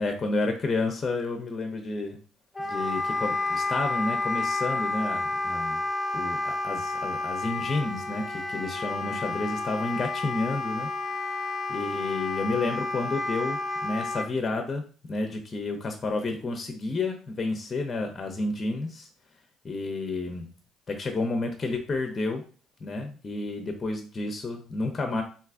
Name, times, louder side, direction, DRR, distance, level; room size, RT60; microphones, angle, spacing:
voice 1, 0.0-2.2 2.6-5.8 6.1-10.9 11.7-19.1 19.6-20.5 20.9-22.4 22.8-25.2, left 3 dB, 35° left, 4 dB, 0.6 m, -30 dB
Wind instrument woodwind instrument, 2.5-14.3, left 2 dB, ahead, 0.9 m, -30 dB
3.1 x 2.6 x 2.4 m, 0.39 s
hypercardioid pair, 65°, 0 cm